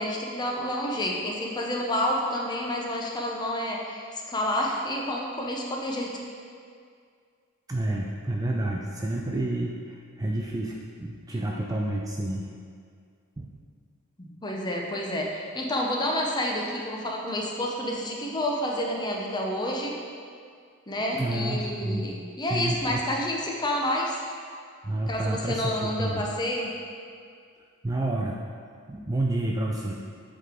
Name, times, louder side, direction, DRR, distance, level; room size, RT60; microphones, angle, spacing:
voice 1, 0.0-6.1 14.2-20.0 20.9-24.2 25.1-26.7, left 1 dB, 20° left, -1 dB, 0.7 m, -29 dB
voice 2, 7.7-12.5 13.4-13.6 20.9-22.1 22.5-23.0 24.8-26.3 27.8-28.4 28.9-29.9, right 1 dB, 15° right, -1 dB, 0.3 m, -29 dB
8.2 x 3.7 x 3.7 m, 2.2 s
head